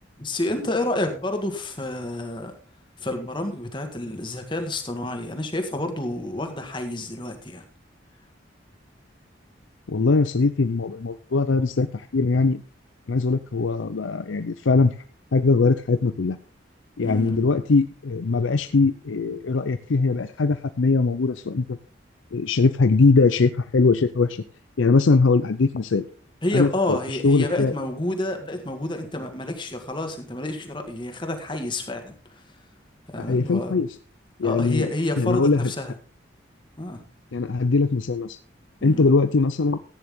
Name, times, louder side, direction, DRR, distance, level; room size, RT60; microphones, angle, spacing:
voice 1, 0.2-2.5 3.0-7.6 17.0-17.4 26.4-32.4 33.1-33.8 34.4-35.9 36.8-37.0 38.8-39.1, left 1 dB, 25° left, 5 dB, 1.8 m, -29 dB
voice 2, 9.9-12.6 13.1-14.9 15.3-16.4 17.0-21.8 22.3-24.4 24.8-26.0 26.5-27.7 33.2-33.9 34.4-34.9 35.2-35.7 37.3-38.4 38.8-39.8, left 3 dB, 85° left, 10 dB, 0.6 m, -21 dB
14.5 x 9.6 x 3.7 m, 0.40 s
head